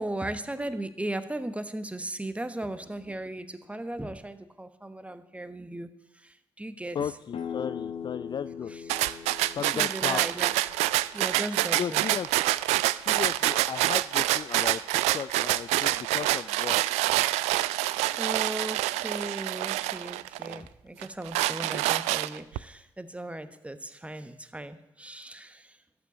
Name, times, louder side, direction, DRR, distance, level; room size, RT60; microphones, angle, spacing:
voice 1, 0.0-5.9 6.2-7.0 9.7-10.5 11.1-12.0 18.2-25.8, right 1 dB, 10° right, 11 dB, 1.2 m, -37 dB
voice 2, 6.9-8.7 9.5-10.4 11.7-12.3 13.0-17.0 20.4-20.7, left 8 dB, 40° left, 15 dB, 0.4 m, -35 dB
sound 1, 7.3-12.9, left 7 dB, 55° left, 1.3 m, -41 dB
sound 2, 8.9-20.6 21.0-22.6, right 16 dB, 75° right, 0.4 m, -26 dB
13.0 x 6.9 x 9.7 m, 0.90 s
hypercardioid pair, 40°, 11 cm